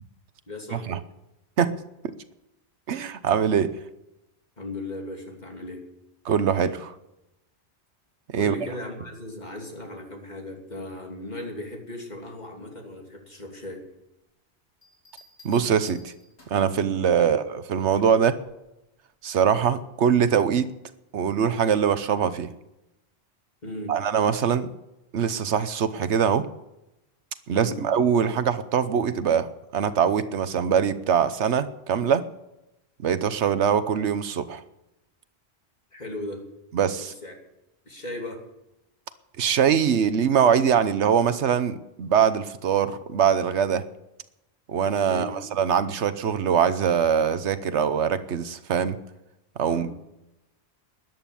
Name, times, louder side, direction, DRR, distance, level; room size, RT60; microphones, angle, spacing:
voice 1, 0.5-1.0 4.6-5.8 8.4-13.9 17.2-17.3 23.6-23.9 27.5-27.8 35.9-36.4 37.0-37.3 37.8-38.4 45.1-45.3 49.7-49.9, left 1 dB, 40° left, 1 dB, 3.1 m, -37 dB
voice 2, 2.9-3.7 6.2-6.9 8.3-8.5 15.4-16.1 16.5-18.4 19.2-20.7 21.1-22.5 23.9-24.7 25.1-26.5 27.5-32.2 33.0-34.6 36.7-37.1 39.4-43.8 44.7-49.0 49.6-50.0, right 7 dB, 90° right, 13 dB, 1.2 m, -23 dB
sound 1, 14.8-16.8 18.4-18.7, left 2 dB, 75° left, 4.2 m, -53 dB
13.0 x 11.0 x 7.0 m, 0.91 s
omnidirectional pair, 1.1 m